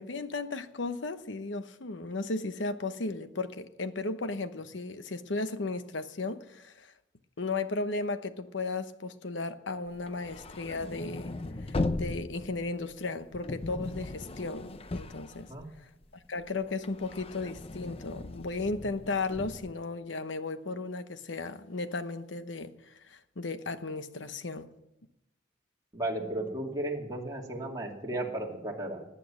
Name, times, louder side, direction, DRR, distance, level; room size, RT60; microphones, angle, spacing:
voice 1, 0.0-6.9 7.4-11.3 11.6-15.5 16.3-22.7 23.1-24.7, left 3 dB, 75° left, 1.0 m, -35 dB
sound 1, 9.9-16.1 16.4-19.7, left 2 dB, 30° left, 0.7 m, -38 dB
voice 2, 25.9-29.1, right 1 dB, 20° right, 2.5 m, -34 dB
18.5 x 8.6 x 7.5 m
head